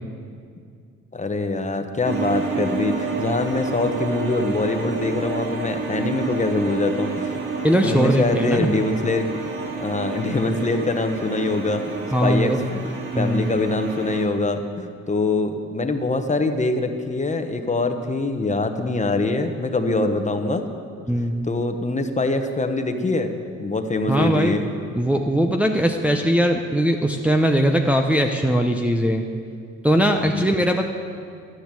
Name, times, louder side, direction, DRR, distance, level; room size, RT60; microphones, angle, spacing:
voice 1, 1.1-7.4 7.8-9.4 9.8-11.9 12.2-12.6 13.2-20.7 21.5-23.3 23.6-24.7 30.2-30.6, left 2 dB, 25° left, 6 dB, 1.1 m, -24 dB
sound 1, 2.0-14.3, right 3 dB, 40° right, 2.4 m, -29 dB
voice 2, 7.6-8.7 12.1-12.6 13.1-13.5 21.1-21.5 24.1-24.6 24.9-29.2 29.8-30.8, equal, 5° right, 2 dB, 0.7 m, -20 dB
11.5 x 10.5 x 7.6 m, 2.3 s
cardioid pair, 90°, 30 cm